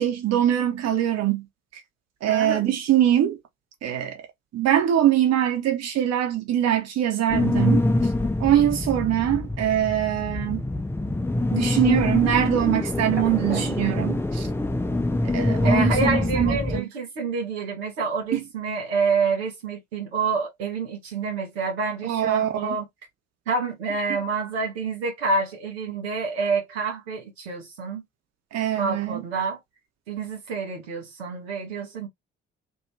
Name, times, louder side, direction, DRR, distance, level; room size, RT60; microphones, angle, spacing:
voice 1, 0.0-1.5 1.7-1.8 2.2-3.4 3.8-4.3 4.5-8.1 8.4-10.6 11.5-14.5 15.2-16.9 18.3-18.4 22.0-22.8 24.1-24.2 28.5-29.2, right 11 dB, 55° right, 1.1 m, -23 dB
voice 2, 2.3-2.6 13.5-13.7 15.6-22.8 23.5-28.0 28.7-29.6 30.1-32.1, right 4 dB, 85° right, 1.0 m, -28 dB
sound 1, 7.3-16.8, left 2 dB, 10° left, 0.6 m, -25 dB
2.7 x 2.6 x 3.2 m
hypercardioid pair, 45°, 30 cm